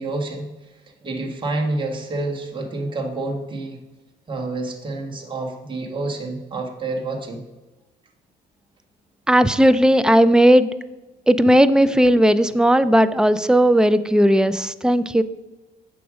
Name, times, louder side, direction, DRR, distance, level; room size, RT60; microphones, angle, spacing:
voice 1, 0.0-3.8 4.3-7.4, right 2 dB, 30° right, 1 dB, 1.6 m, -28 dB
voice 2, 9.3-10.7 11.3-15.2, equal, 5° right, 13 dB, 0.3 m, -16 dB
8.0 x 6.1 x 5.0 m, 1.1 s
cardioid pair, 110°, 17 cm